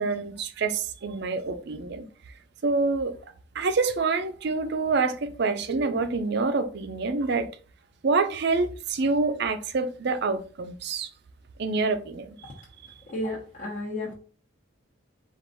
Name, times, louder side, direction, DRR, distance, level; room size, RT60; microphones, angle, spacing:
voice 1, 0.0-2.1 2.6-3.1 3.5-7.5 8.0-11.1 11.6-12.5 12.9-13.0, right 4 dB, 55° right, 0.5 m, -27 dB
voice 2, 13.1-14.1, left 1 dB, 35° left, 0.9 m, -32 dB
4.6 x 2.5 x 3.9 m
head